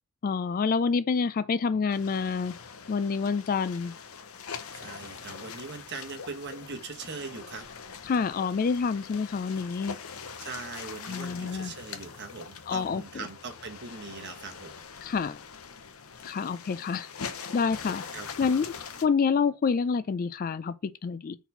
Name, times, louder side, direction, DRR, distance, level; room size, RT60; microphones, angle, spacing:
voice 1, 0.2-2.5 2.9-3.9 8.1-10.0 11.1-11.7 12.7-13.0 15.0-15.4 16.2-17.1 17.5-18.0 18.4-18.7 19.0-21.4, left 5 dB, 40° left, 0.3 m, -27 dB
sound 1, 1.9-19.1, left 6 dB, 75° left, 0.7 m, -43 dB
voice 2, 4.7-7.6 10.4-14.7 17.8-18.3, right 4 dB, 50° right, 1.3 m, -41 dB
4.2 x 4.1 x 5.6 m
head